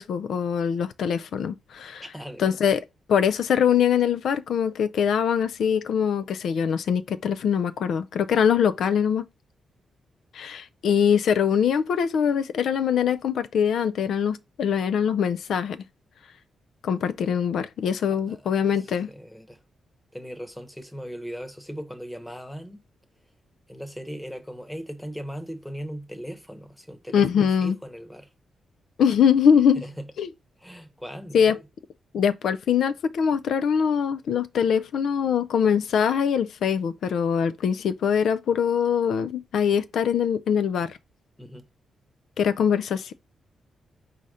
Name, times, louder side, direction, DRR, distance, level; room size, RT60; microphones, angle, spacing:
voice 1, 0.0-2.0 2.4-2.8 3.1-9.2 10.3-15.8 16.8-19.1 27.1-27.8 29.0-29.8 30.2-30.3 31.3-31.6 32.1-41.0 42.4-43.1, left 7 dB, 75° left, 0.3 m, -23 dB
voice 2, 2.0-2.5 18.1-19.6 20.1-22.8 23.7-28.3 29.8-30.1 30.6-31.6 41.4-41.7, equal, 5° left, 0.9 m, -38 dB
4.2 x 2.6 x 4.8 m
cardioid pair, 90°, 0 cm